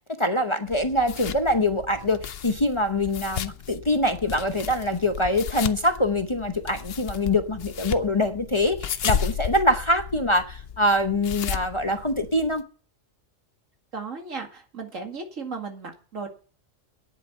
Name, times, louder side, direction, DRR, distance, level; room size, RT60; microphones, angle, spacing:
voice 1, 0.2-12.6, left 1 dB, 25° left, 0.8 m, -24 dB
sound 1, 0.7-12.6, left 8 dB, 55° left, 0.9 m, -34 dB
voice 2, 13.9-16.3, right 4 dB, 85° right, 2.5 m, -35 dB
9.9 x 8.9 x 6.7 m
omnidirectional pair, 1.3 m